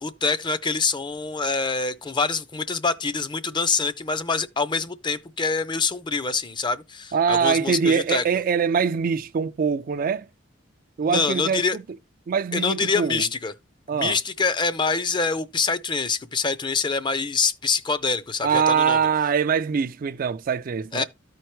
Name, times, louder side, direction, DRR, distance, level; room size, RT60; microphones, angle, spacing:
voice 1, 0.0-8.2 11.0-11.8 12.5-13.5 13.9-19.0 20.9-21.0, left 4 dB, 25° left, 0.5 m, -25 dB
voice 2, 7.1-10.3 11.0-11.8 12.3-13.3 13.9-14.2 18.4-21.0, right 6 dB, 45° right, 0.3 m, -23 dB
13.5 x 4.5 x 3.0 m
head